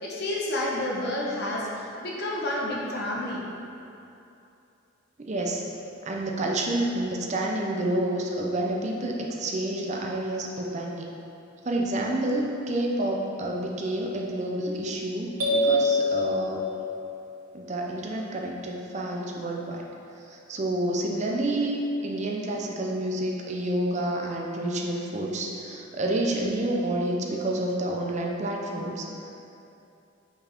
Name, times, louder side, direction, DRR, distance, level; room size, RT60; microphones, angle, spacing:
voice 1, 0.0-3.5, left 1 dB, 50° left, -4 dB, 1.0 m, -30 dB
voice 2, 5.2-5.6 6.0-11.1 11.6-16.6 17.5-19.8 20.2-29.3, right 1 dB, 35° right, -1 dB, 0.6 m, -29 dB
sound 1, 15.4-17.3, left 2 dB, 90° right, 1.5 m, -26 dB
5.4 x 4.7 x 4.4 m, 2.7 s
head